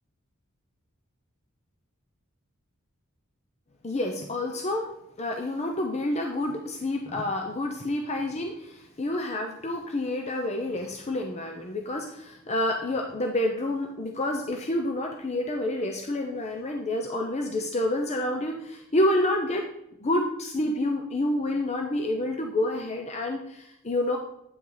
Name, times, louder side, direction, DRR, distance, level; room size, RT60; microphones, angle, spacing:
voice 1, 3.8-4.9 5.2-19.7 20.0-24.2, left 1 dB, 30° left, 3 dB, 0.7 m, -28 dB
8.8 x 5.8 x 3.9 m, 0.81 s
head